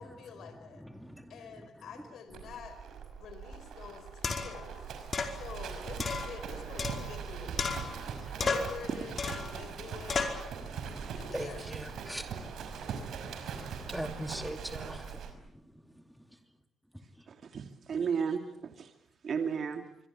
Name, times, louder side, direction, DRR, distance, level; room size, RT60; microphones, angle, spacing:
voice 1, 0.0-0.8 1.3-2.8 3.2-4.8 5.3-7.8 8.3-10.2 11.2-11.8, left 6 dB, 75° left, 4.8 m, -47 dB
voice 2, 0.8-1.3 8.1-8.3 10.6-13.2 13.5-15.4, equal, ahead, 2.6 m, -42 dB
Livestock farm animals working animals, 2.3-15.3, right 7 dB, 80° right, 5.7 m, -41 dB
sound 1, 3.5-3.6 4.2-4.6 5.1-5.4 6.0-7.3 7.6-8.1 8.4-8.8 9.2-9.5 10.1-10.4, left 4 dB, 50° left, 5.0 m, -33 dB
voice 3, 17.3-18.9 19.2-19.9, right 6 dB, 60° right, 2.6 m, -34 dB
26.5 x 23.0 x 8.6 m
cardioid pair, 80°, 0 cm